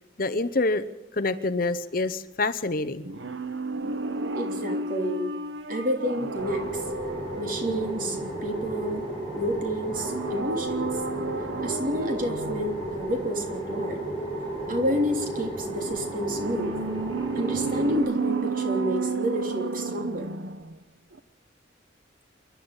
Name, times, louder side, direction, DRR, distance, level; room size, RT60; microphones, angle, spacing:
voice 1, 0.2-0.8 1.1-3.1, left 3 dB, 50° left, 13 dB, 0.8 m, -26 dB
sound 1, 3.0-8.8 9.8-12.8 15.6-20.8 21.1-21.2, right 3 dB, 70° right, 1.0 m, -32 dB
voice 2, 4.3-5.3 5.7-6.8 7.4-9.1 9.3-11.0 11.6-14.1 14.7-16.7 17.3-20.3, equal, 45° right, 3 dB, 3.3 m, -29 dB
sound 2, 6.4-18.0, right 1 dB, 30° right, 7.7 m, -33 dB
27.5 x 11.5 x 8.9 m, 0.97 s
head